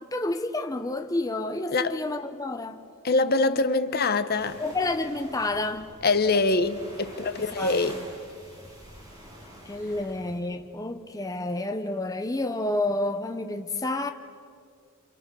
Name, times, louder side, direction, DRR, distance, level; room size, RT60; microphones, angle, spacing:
voice 1, 0.1-2.8 4.6-5.9 7.6-7.7 9.7-14.1, left 2 dB, 15° left, 0.8 m, -29 dB
voice 2, 3.0-4.6 6.0-8.0, left 3 dB, 45° left, 1.0 m, -24 dB
sound 1, 4.4-10.4, equal, 15° right, 6.4 m, -46 dB
28.5 x 28.0 x 6.9 m
head